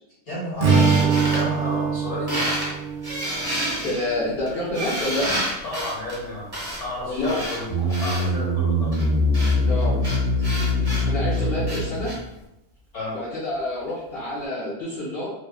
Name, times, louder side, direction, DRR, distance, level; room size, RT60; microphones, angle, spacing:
voice 1, 0.3-2.6 5.6-7.7 8.0-8.9 12.9-13.2, left 1 dB, 75° left, -7 dB, 1.5 m, -32 dB
Strum, 0.6-5.0, right 5 dB, 60° right, 0.6 m, -24 dB
sound 1, 0.7-2.0 2.3-2.7 3.0-8.3 8.9-12.2, equal, 25° right, 0.7 m, -30 dB
voice 2, 3.8-5.3 7.0-7.5 7.8-7.9 9.6-10.0 11.1-12.1 13.1-15.3, left 1 dB, 60° left, -7 dB, 0.8 m, -28 dB
sound 2, 7.7-12.2, left 1 dB, 45° left, 0.4 m, -23 dB
2.9 x 2.0 x 2.3 m, 0.87 s
omnidirectional pair, 1.2 m